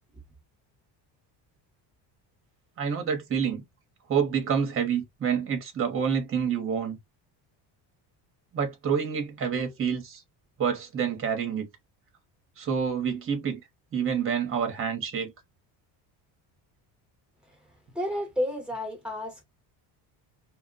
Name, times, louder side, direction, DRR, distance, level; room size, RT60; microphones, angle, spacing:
voice 1, 2.8-3.6 4.1-7.0 8.5-10.2 10.6-11.7 12.6-13.6 13.9-15.3, right 7 dB, 30° right, 0.9 m, -28 dB
voice 2, 17.9-19.4, left 1 dB, ahead, 1.0 m, -31 dB
2.2 x 2.2 x 3.8 m
cardioid pair, 160°, 45 cm